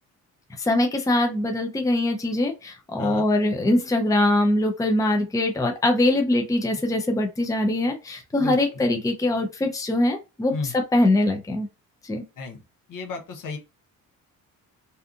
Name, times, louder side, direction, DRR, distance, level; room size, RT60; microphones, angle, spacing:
voice 1, 0.6-11.7 12.0-12.2, left 1 dB, 10° left, 3 dB, 0.6 m, -22 dB
voice 2, 8.4-8.8 10.5-10.7 12.4-12.6 12.9-13.6, left 4 dB, 60° left, 3 dB, 0.9 m, -33 dB
2.7 x 2.4 x 2.4 m, 0.27 s
cardioid pair, 80°, 36 cm